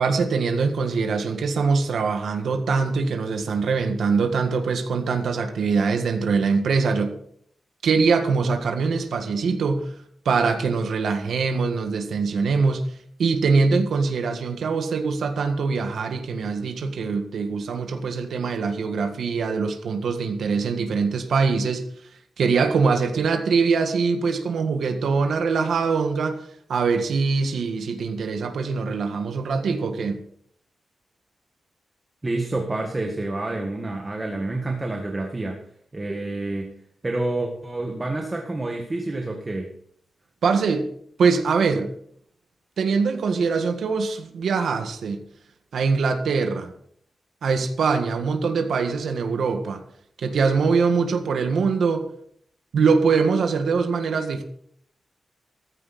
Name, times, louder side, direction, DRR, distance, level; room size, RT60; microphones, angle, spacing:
voice 1, 0.0-7.1 7.8-9.9 10.3-12.8 13.2-21.9 22.4-26.4 26.7-30.2 40.4-40.9 41.2-41.9 42.8-45.2 45.7-46.7 47.4-49.8 50.2-52.1 52.7-54.4, right 4 dB, 80° right, 5 dB, 1.7 m, -23 dB
voice 2, 32.2-35.6 35.9-36.7 37.0-39.7, right 2 dB, 20° right, 2 dB, 1.7 m, -28 dB
14.5 x 14.0 x 4.3 m, 0.64 s
wide cardioid pair, 165°, 0 cm